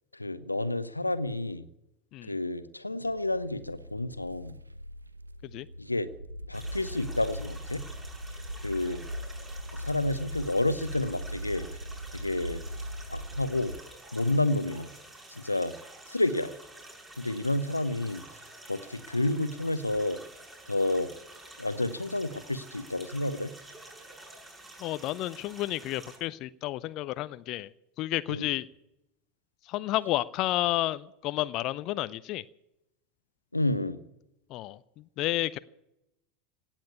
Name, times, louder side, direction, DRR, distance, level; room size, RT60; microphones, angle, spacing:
voice 1, 0.1-1.7 2.3-4.5 5.8-6.1 6.5-7.8 8.6-9.0 9.7-11.7 12.1-12.6 13.1-13.7 14.1-14.9 15.3-15.7 16.1-16.5 17.2-18.2 18.7-20.2 20.7-21.1 21.6-23.5 28.3-28.5 33.5-34.0, left 2 dB, 85° left, 15 dB, 0.7 m, -30 dB
sound 1, 3.0-13.8, equal, 85° right, 0.6 m, -40 dB
sound 2, 6.5-26.2, right 2 dB, 10° right, 7.1 m, -49 dB
voice 2, 24.8-27.7 28.0-28.7 29.6-32.4 34.5-35.6, left 16 dB, 45° left, 16 dB, 0.5 m, -31 dB
17.0 x 8.9 x 8.5 m, 0.87 s
figure-of-eight pair, 80°, 0 cm